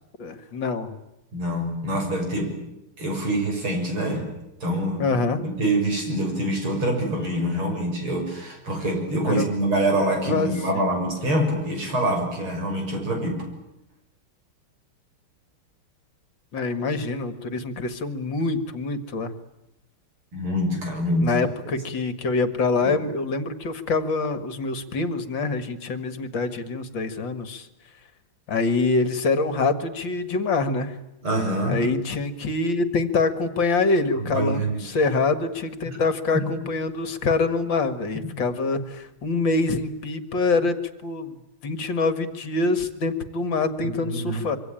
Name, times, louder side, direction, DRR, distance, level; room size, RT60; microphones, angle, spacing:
voice 1, 0.2-1.0 5.0-5.4 9.3-9.5 10.3-10.8 16.5-19.3 21.2-27.7 28.5-31.0 31.7-40.8 41.0-41.4 41.6-44.6, left 3 dB, 60° left, 11 dB, 2.4 m, -25 dB
voice 2, 1.3-2.6 3.0-4.3 4.6-5.1 5.3-13.5 20.3-21.3 22.8-22.9 31.2-31.8 34.3-34.9 35.9-36.0 36.3-36.5 44.1-44.4, right 1 dB, 75° right, 3 dB, 7.6 m, -25 dB
26.0 x 24.0 x 9.0 m, 0.91 s
omnidirectional pair, 2.3 m